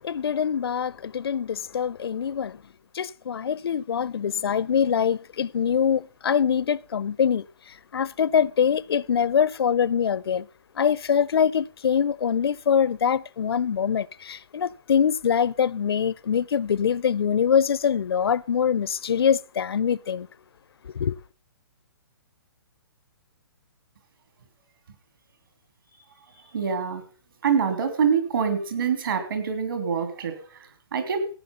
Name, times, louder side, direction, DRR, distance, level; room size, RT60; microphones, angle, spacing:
voice 1, 0.0-2.6 2.9-10.5 10.7-20.3 20.8-21.2, left 7 dB, 75° left, 0.5 m, -24 dB
voice 2, 26.5-27.0 27.4-31.3, right 6 dB, 55° right, 3.3 m, -25 dB
15.5 x 9.1 x 5.5 m
hypercardioid pair, 170°, 13 cm